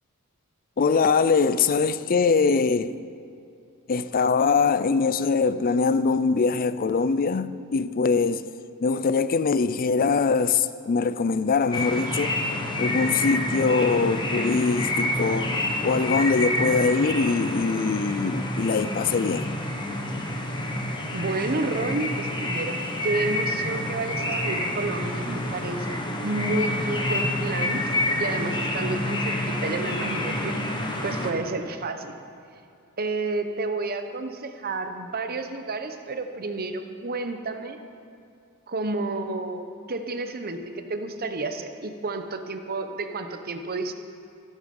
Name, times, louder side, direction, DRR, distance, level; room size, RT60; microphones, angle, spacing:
voice 1, 0.8-2.9 3.9-8.4 8.8-12.4 12.8-15.5 15.8-19.5, left 4 dB, 40° left, 0.4 m, -22 dB
sound 1, 11.7-31.3, left 1 dB, 20° left, 1.3 m, -28 dB
voice 2, 21.1-22.8 23.0-27.8 28.2-30.6 31.0-32.1 33.0-37.8 38.7-43.9, right 2 dB, 45° right, 0.9 m, -30 dB
14.5 x 12.0 x 5.4 m
head